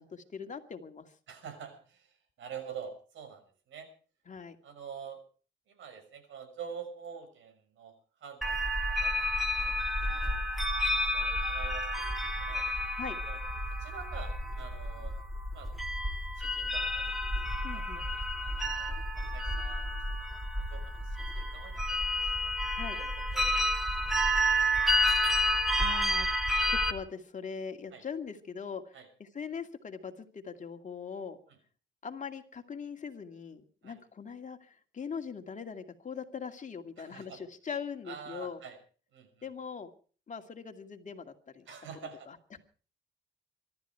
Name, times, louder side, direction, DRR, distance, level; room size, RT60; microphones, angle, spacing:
voice 1, 0.0-1.1 4.3-4.6 13.0-13.2 17.6-18.0 22.7-23.0 25.8-26.3 26.7-31.4 32.0-38.6 39.4-39.9 40.3-41.6 42.3-42.4, left 6 dB, 40° left, 6 dB, 2.3 m, -41 dB
voice 2, 1.3-3.9 4.6-5.2 5.7-10.5 11.1-12.6 13.2-13.4 13.8-15.2 15.5-15.7 16.3-20.0 20.6-21.8 22.2-22.5 22.9-24.9 25.3-25.5 27.9-28.0 28.9-29.1 31.5-31.6 33.8-34.0 37.0-37.4 38.1-38.8 39.1-39.5 41.7-42.3, right 7 dB, 75° right, 9 dB, 5.9 m, -47 dB
sound 1, 8.4-26.9, equal, ahead, 2.7 m, -30 dB
24.5 x 12.5 x 4.6 m, 0.41 s
cardioid pair, 90°, 20 cm